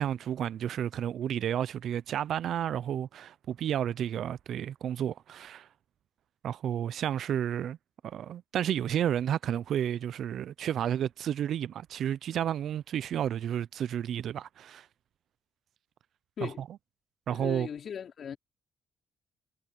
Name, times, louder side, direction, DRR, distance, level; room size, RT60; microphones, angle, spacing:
voice 1, 0.0-5.7 6.4-7.8 8.0-14.9 16.4-16.5 17.3-17.7, right 10 dB, 70° right, 0.4 m, -31 dB
voice 2, 17.3-18.4, left 7 dB, 55° left, 4.1 m, -38 dB
cardioid pair, 90°, 0 cm